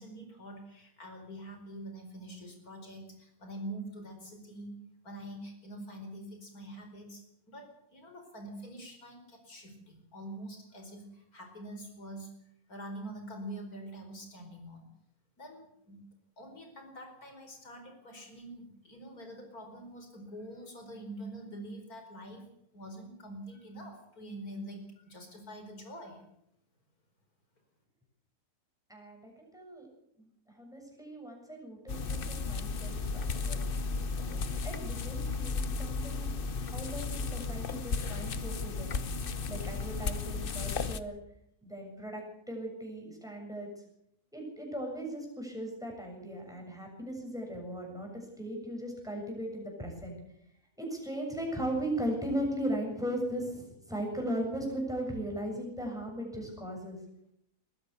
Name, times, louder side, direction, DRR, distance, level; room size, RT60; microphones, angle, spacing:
voice 1, 0.0-4.8 5.0-12.3 12.7-14.9 15.4-16.0 16.4-22.4 22.7-26.2, right 1 dB, 70° left, 5 dB, 5.2 m, -45 dB
voice 2, 28.9-29.9 30.2-33.7 34.1-36.3 36.6-38.9 39.5-41.2 41.6-43.7 44.3-50.2 50.8-57.0, right 1 dB, ahead, 0 dB, 7.3 m, -38 dB
sound 1, 31.9-41.0, left 4 dB, 40° left, 1.0 m, -34 dB
21.0 x 15.0 x 8.3 m, 0.74 s
omnidirectional pair, 1.6 m